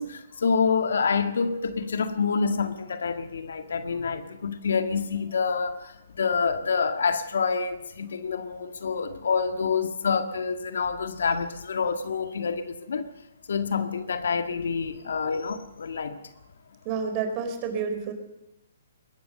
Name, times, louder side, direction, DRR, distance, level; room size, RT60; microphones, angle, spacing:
voice 1, 0.0-13.1 13.5-16.2, left 5 dB, 70° left, 1.8 m, -27 dB
voice 2, 16.8-18.1, right 6 dB, 35° right, 4.6 m, -29 dB
21.5 x 18.0 x 6.8 m
hypercardioid pair, 135°, 0 cm